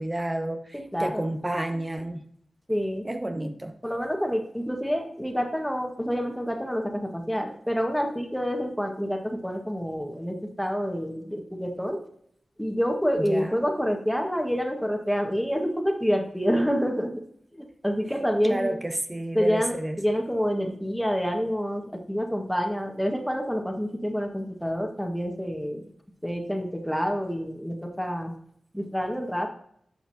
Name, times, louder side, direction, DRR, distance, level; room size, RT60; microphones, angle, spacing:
voice 1, 0.0-2.2 3.0-3.7 13.3-13.6 18.4-20.0, right 1 dB, 25° right, 6 dB, 1.0 m, -30 dB
voice 2, 0.9-1.3 2.7-3.0 3.8-12.0 12.6-17.2 17.5-18.8 19.3-25.9 26.2-28.3 28.7-29.5, equal, ahead, 2 dB, 1.7 m, -27 dB
11.0 x 5.8 x 2.8 m, 0.66 s
cardioid pair, 45°, 0 cm